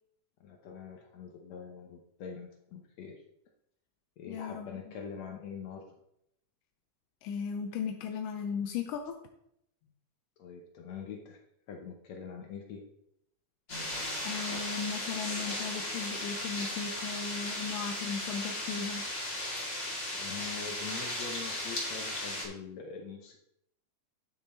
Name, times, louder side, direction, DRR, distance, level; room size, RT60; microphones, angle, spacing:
voice 1, 0.4-3.2 4.2-6.0 10.4-11.4 11.7-12.8 20.1-23.4, left 6 dB, 65° left, 3 dB, 1.9 m, -44 dB
voice 2, 4.3-4.7 7.2-9.2 14.2-19.0, left 6 dB, 90° left, 4 dB, 2.3 m, -36 dB
sound 1, 13.7-22.4, left 1 dB, 25° left, 2.1 m, -36 dB
10.5 x 6.1 x 4.2 m, 0.77 s
omnidirectional pair, 3.7 m